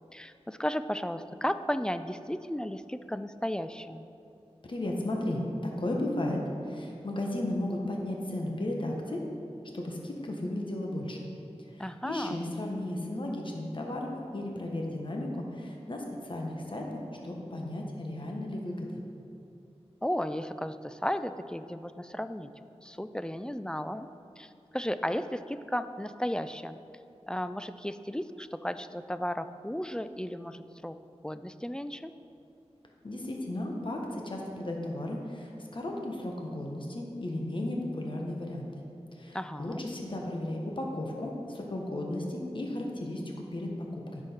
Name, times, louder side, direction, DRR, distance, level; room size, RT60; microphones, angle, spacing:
voice 1, 0.1-4.1 11.8-12.4 20.0-22.5 22.8-24.1 24.4-26.8 27.3-31.0 31.2-32.1 39.3-39.9, equal, 5° left, 11 dB, 0.3 m, -34 dB
voice 2, 4.6-9.2 9.7-11.3 11.7-19.0 33.0-38.6 39.1-43.2 43.5-44.2, left 1 dB, 50° left, 0 dB, 1.2 m, -34 dB
10.5 x 6.2 x 4.5 m, 2.8 s
wide cardioid pair, 80°, 11 cm